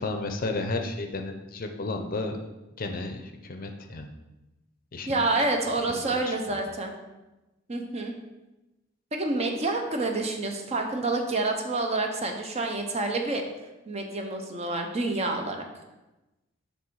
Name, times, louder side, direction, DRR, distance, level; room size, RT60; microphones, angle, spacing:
voice 1, 0.0-2.4 2.8-4.1 4.9-5.3 5.9-6.4, left 2 dB, 45° left, 5 dB, 0.6 m, -33 dB
voice 2, 5.1-6.9 7.7-8.1 9.1-13.4 13.9-15.7, right 2 dB, 35° right, 3 dB, 0.7 m, -28 dB
7.3 x 3.4 x 4.7 m, 1.0 s
head